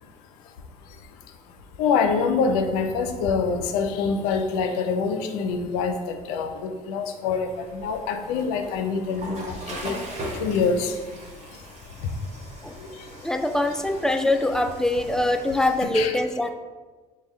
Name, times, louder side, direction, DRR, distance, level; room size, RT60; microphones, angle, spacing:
voice 1, 1.8-9.9 10.4-10.9 15.9-16.1, left 5 dB, 75° left, 7 dB, 0.5 m, -25 dB
Water / Toilet flush, 7.5-15.8, right 1 dB, 35° right, 1.2 m, -40 dB
voice 2, 13.2-16.5, left 1 dB, 5° left, 7 dB, 0.3 m, -23 dB
5.2 x 2.2 x 3.6 m, 1.4 s
hypercardioid pair, 65°, 19 cm